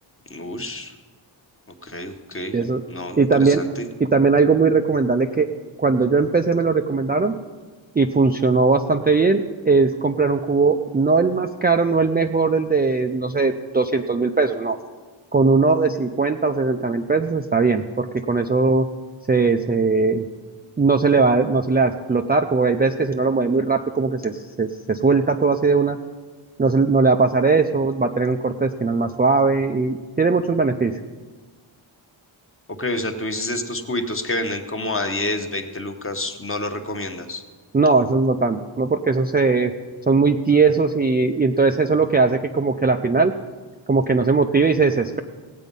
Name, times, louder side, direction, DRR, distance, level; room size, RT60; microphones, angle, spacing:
voice 1, 0.3-0.9 1.8-2.6 2.9-3.9 32.8-37.4, left 2 dB, 25° left, 6 dB, 1.0 m, -28 dB
voice 2, 3.2-3.6 4.0-5.5 5.8-7.3 8.0-14.8 15.3-18.9 19.3-20.2 20.8-26.0 26.6-30.9 37.7-39.7 40.1-43.3 43.9-45.2, right 4 dB, 20° right, 5 dB, 0.4 m, -19 dB
18.0 x 8.3 x 5.3 m, 1.4 s
wide cardioid pair, 155°, 48 cm